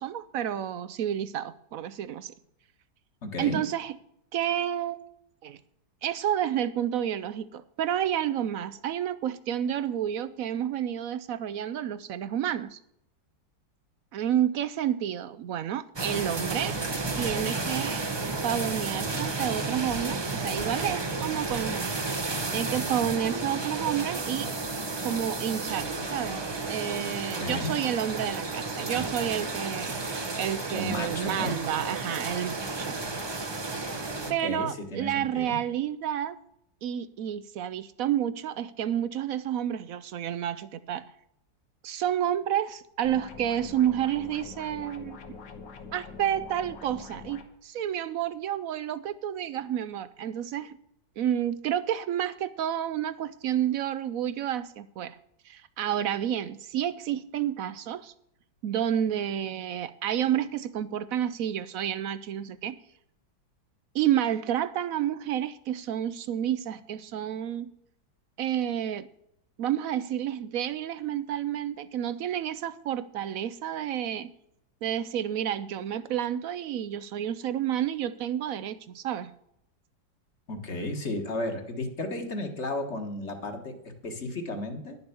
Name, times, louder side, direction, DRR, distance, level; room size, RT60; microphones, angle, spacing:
voice 1, 0.0-2.3 3.4-3.9 4.3-5.0 5.4-5.6 6.0-12.8 14.1-16.8 17.2-18.0 18.4-22.0 22.5-24.5 25.0-29.9 30.4-33.0 34.3-36.4 36.8-41.1 41.8-45.2 45.9-50.8 51.2-55.2 55.4-58.1 58.6-62.8 63.9-67.7 68.4-69.1 69.6-74.3 74.8-79.3, right 10 dB, 70° right, 14 dB, 0.8 m, -30 dB
voice 2, 3.2-3.6 27.4-27.7 30.7-31.5 34.2-35.6 80.5-85.0, left 2 dB, 40° left, 5 dB, 1.6 m, -34 dB
sound 1, 16.0-34.3, right 3 dB, 30° right, 0.5 m, -32 dB
sound 2, 43.0-47.4, left 4 dB, 85° left, 2.0 m, -44 dB
11.0 x 7.0 x 6.8 m, 0.75 s
omnidirectional pair, 1.9 m